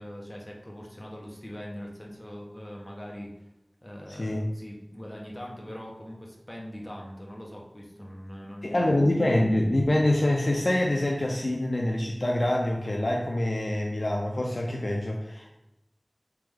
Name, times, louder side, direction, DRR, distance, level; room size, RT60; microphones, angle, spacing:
voice 1, 0.0-3.5 3.8-9.0, equal, 25° left, -2 dB, 0.9 m, -41 dB
voice 2, 4.1-4.4 8.6-15.6, left 1 dB, 60° left, 0 dB, 0.4 m, -25 dB
3.5 x 3.3 x 3.5 m, 0.92 s
wide cardioid pair, 45°, 0 cm